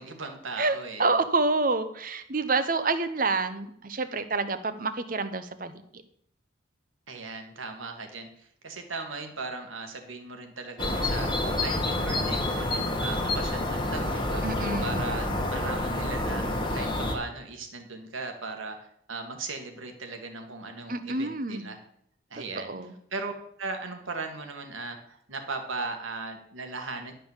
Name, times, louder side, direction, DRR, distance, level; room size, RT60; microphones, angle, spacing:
voice 1, 0.0-1.2 7.1-11.3 11.6-14.4 14.8-21.8 22.3-23.3 23.6-27.1, right 3 dB, 90° right, 4 dB, 1.9 m, -38 dB
voice 2, 0.6-5.7 14.4-15.1 20.9-21.7 22.5-22.9, right 3 dB, 45° right, 11 dB, 0.9 m, -28 dB
sound 1, 10.8-17.2, left 1 dB, 25° left, 1.3 m, -28 dB
11.5 x 5.4 x 7.4 m, 0.70 s
head